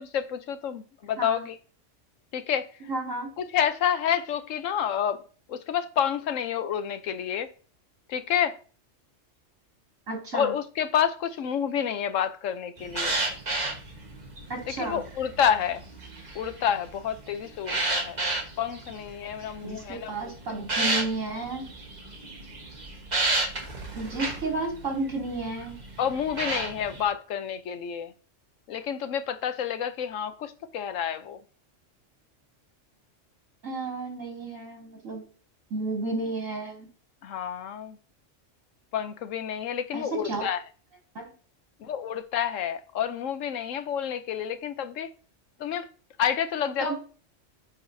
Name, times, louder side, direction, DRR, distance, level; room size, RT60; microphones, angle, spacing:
voice 1, 0.0-1.6 2.3-2.7 3.4-5.2 5.5-7.5 8.1-8.6 10.3-13.2 14.8-15.8 16.3-18.2 18.6-20.3 26.0-28.1 28.7-31.4 37.2-38.0 38.9-40.6 41.8-45.1 45.6-45.9 46.2-46.9, left 8 dB, 85° left, 1.1 m, -29 dB
voice 2, 2.9-3.3 10.1-10.5 14.5-15.0 19.6-21.7 23.9-25.8 33.6-35.2 35.7-36.9 39.9-40.5 41.1-41.3 46.8-46.9, right 2 dB, 85° right, 3.2 m, -32 dB
sound 1, 12.8-27.0, right 2 dB, 35° right, 1.4 m, -33 dB
9.4 x 4.9 x 2.7 m
omnidirectional pair, 1.3 m